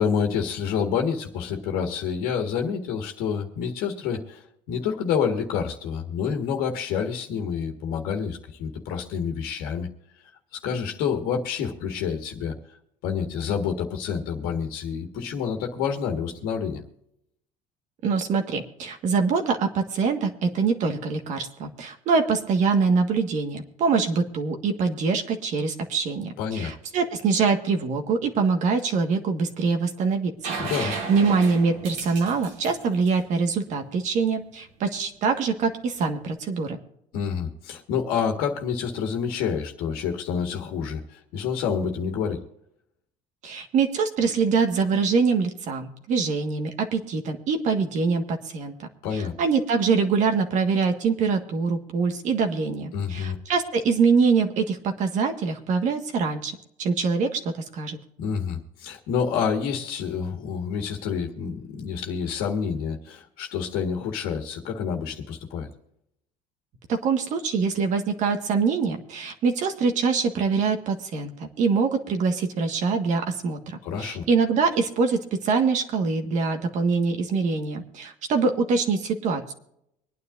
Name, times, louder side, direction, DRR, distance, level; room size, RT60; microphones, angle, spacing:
voice 1, 0.0-9.9 10.5-12.6 13.0-16.8 26.4-26.7 30.6-31.0 37.1-42.4 49.0-49.3 52.9-53.4 58.2-65.7 73.8-74.2, left 7 dB, 75° left, 3 dB, 1.7 m, -28 dB
voice 2, 18.0-36.8 43.4-57.4 57.7-58.0 66.9-79.5, right 5 dB, 55° right, 5 dB, 1.6 m, -24 dB
sound 1, 30.4-34.1 36.0-36.1, right 4 dB, 85° right, 3.5 m, -34 dB
25.0 x 9.6 x 2.6 m, 0.77 s
cardioid pair, 130°, 15 cm